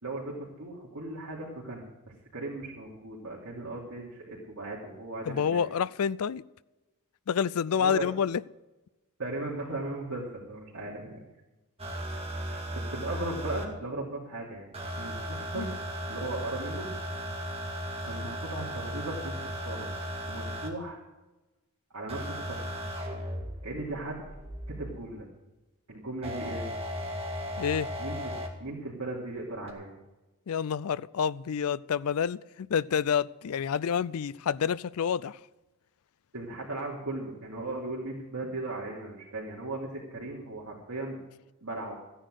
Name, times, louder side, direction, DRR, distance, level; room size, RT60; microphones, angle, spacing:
voice 1, 0.0-1.9 2.3-5.8 7.7-8.1 9.2-11.2 12.5-12.6 12.9-15.8 16.1-16.9 18.0-19.9 20.3-21.0 21.9-22.8 23.6-24.2 24.7-25.3 25.9-26.7 28.0-28.3 28.6-30.0 36.3-41.2 41.6-42.0, right 2 dB, 70° right, 3.0 m, -37 dB
voice 2, 5.3-6.4 7.3-8.4 15.6-15.7 27.6-27.9 30.5-35.4, left 7 dB, 75° left, 0.4 m, -28 dB
sound 1, 11.8-13.7 14.7-20.7 22.1-25.1 26.2-28.5 29.7-29.8, equal, 25° right, 2.2 m, -36 dB
14.5 x 10.0 x 6.4 m
head